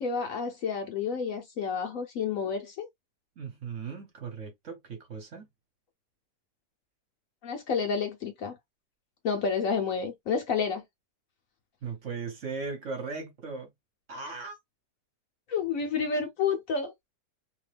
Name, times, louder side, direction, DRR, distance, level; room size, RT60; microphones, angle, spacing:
voice 1, 0.0-2.9 7.4-8.6 9.2-10.8 15.5-16.9, left 5 dB, 65° left, 0.9 m, -30 dB
voice 2, 3.4-5.5 11.8-13.7 14.1-14.6, right 4 dB, 50° right, 1.2 m, -38 dB
2.9 x 2.2 x 3.3 m
omnidirectional pair, 1.8 m